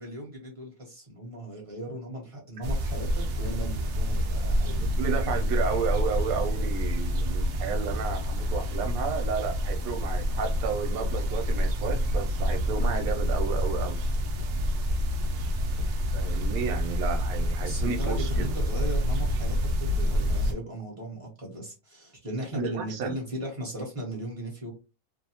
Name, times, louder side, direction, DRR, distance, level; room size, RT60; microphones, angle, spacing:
voice 1, 0.0-4.9 12.8-13.1 17.6-24.7, right 1 dB, 30° right, 0.9 m, -37 dB
sound 1, 2.6-20.5, equal, 65° right, 0.8 m, -27 dB
voice 2, 4.8-14.0 16.1-18.5 22.5-23.1, right 6 dB, 85° right, 1.1 m, -32 dB
2.7 x 2.0 x 2.8 m
omnidirectional pair, 1.5 m